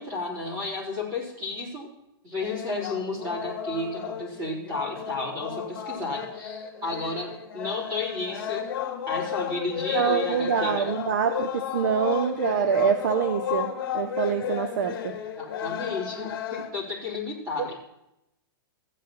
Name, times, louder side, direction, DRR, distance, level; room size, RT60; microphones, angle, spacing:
voice 1, 0.0-1.9 2.2-8.7 9.1-10.9 15.0-15.1 15.4-17.8, left 3 dB, 20° right, -4 dB, 3.6 m, -32 dB
sound 1, 2.4-16.7, left 9 dB, 60° left, 1.8 m, -33 dB
voice 2, 9.9-15.2 17.6-17.8, right 7 dB, 50° right, 11 dB, 0.5 m, -25 dB
15.5 x 9.6 x 3.0 m, 0.87 s
supercardioid pair, 175°, 13 cm